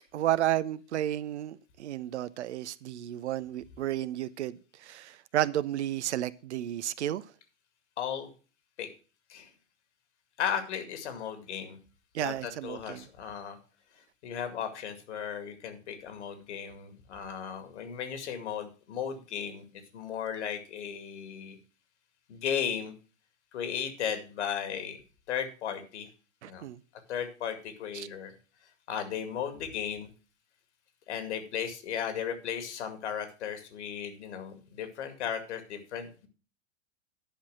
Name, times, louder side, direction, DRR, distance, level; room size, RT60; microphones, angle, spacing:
voice 1, 0.1-7.2 12.1-13.0 26.4-26.8 27.9-28.1, right 12 dB, 65° right, 0.7 m, -32 dB
voice 2, 8.0-8.3 8.8-8.9 9.3-9.5 10.4-11.8 12.2-13.6 14.2-19.6 19.9-21.6 22.3-22.9 23.5-25.0 25.3-26.1 26.5-26.7 27.1-28.3 28.9-30.1 31.1-36.3, left 8 dB, 65° left, 2.2 m, -35 dB
10.5 x 5.6 x 6.1 m
figure-of-eight pair, 90°, 37 cm